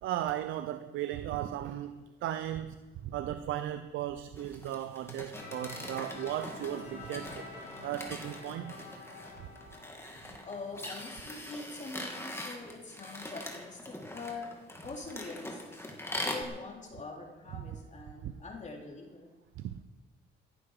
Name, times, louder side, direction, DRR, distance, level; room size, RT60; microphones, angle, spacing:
voice 1, 0.0-2.8 3.0-7.4 7.8-8.7 17.5-17.8 18.2-18.3 19.6-19.7, right 12 dB, 85° right, 11 dB, 0.7 m, -36 dB
sound 1, 4.4-16.4, left 1 dB, 10° left, 2.5 m, -42 dB
sound 2, 5.3-12.1, left 3 dB, 75° left, 6.0 m, -48 dB
voice 2, 10.4-14.5 14.8-15.6 16.2-19.3, left 3 dB, 35° left, -1 dB, 3.7 m, -44 dB
16.0 x 11.5 x 5.0 m, 1.1 s
cardioid pair, 90°, 20 cm